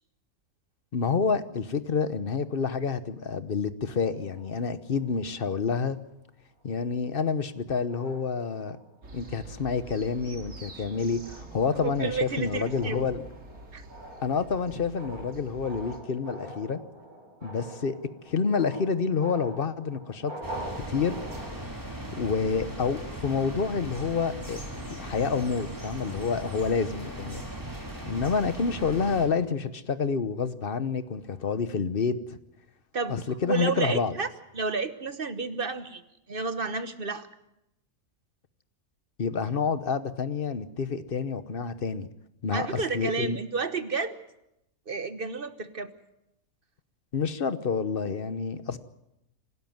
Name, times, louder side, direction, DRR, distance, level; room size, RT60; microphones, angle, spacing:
voice 1, 0.9-6.0 6.6-8.8 9.1-13.3 14.2-16.8 17.4-18.0 18.3-20.3 20.9-21.2 22.2-24.6 25.0-27.4 28.1-32.4 33.1-34.1 39.2-42.1 42.4-43.4 47.1-48.8, left 5 dB, 45° left, 13 dB, 1.1 m, -28 dB
sound 1, 4.1-5.9 6.6-6.8 7.2-7.5 7.9-9.2 9.7-10.0 10.4-22.0, right 1 dB, 80° right, 6.6 m, -45 dB
sound 2, 9.0-16.0, right 2 dB, 60° right, 2.6 m, -46 dB
voice 2, 11.7-13.1 13.7-13.8 32.9-33.2 33.4-34.3 34.5-36.0 36.3-37.3 42.5-44.2 44.9-45.9, right 4 dB, 40° right, 11 dB, 1.2 m, -31 dB
sound 3, 20.4-29.3, right 1 dB, 15° right, 4.0 m, -38 dB
26.0 x 13.0 x 9.3 m, 0.85 s
omnidirectional pair, 1.5 m